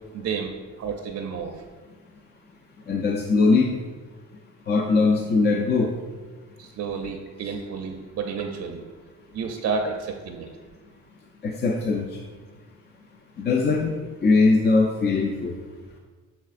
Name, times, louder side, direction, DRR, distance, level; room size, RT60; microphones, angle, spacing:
voice 1, 0.1-0.5 0.8-1.6 6.6-8.8 9.3-10.5, right 5 dB, 50° right, 4 dB, 0.5 m, -30 dB
voice 2, 2.9-3.7 4.7-5.9 11.4-12.0 13.4-13.9 14.2-15.5, left 3 dB, 35° left, 2 dB, 0.4 m, -20 dB
6.5 x 3.3 x 2.4 m, 1.4 s
cardioid pair, 90°, 30 cm